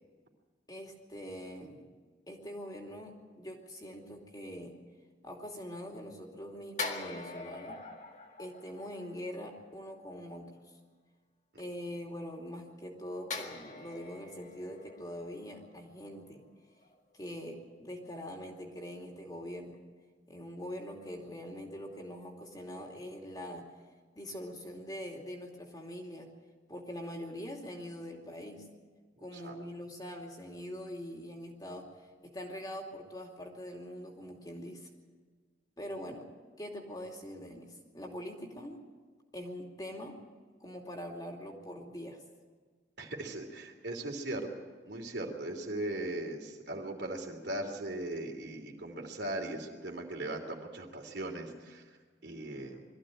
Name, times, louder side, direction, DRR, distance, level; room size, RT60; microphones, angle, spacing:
voice 1, 0.7-1.8 2.3-4.8 5.2-7.8 8.4-10.6 11.6-16.4 17.1-19.8 20.3-23.7 24.1-26.3 26.7-28.7 29.2-34.9 35.8-36.3 36.6-38.8 39.3-40.2 40.6-42.2, equal, 20° left, 1 dB, 2.7 m, -43 dB
sound 1, 6.8-9.5 13.3-16.5 16.8-17.0, left 3 dB, 40° left, 1.8 m, -43 dB
voice 2, 29.2-29.6 43.0-44.5 44.9-51.9 52.2-52.8, right 1 dB, 65° right, 2 dB, 3.1 m, -39 dB
22.0 x 14.5 x 9.1 m, 1.5 s
head